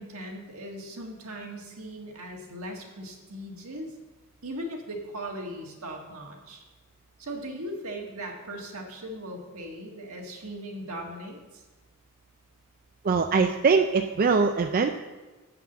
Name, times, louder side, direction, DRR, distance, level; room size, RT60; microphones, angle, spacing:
voice 1, 0.0-3.9 4.4-6.6 7.2-11.6, right 1 dB, 75° right, 1 dB, 1.6 m, -38 dB
voice 2, 13.0-14.9, right 5 dB, 40° right, 6 dB, 0.4 m, -22 dB
7.6 x 5.9 x 7.2 m, 1.2 s
head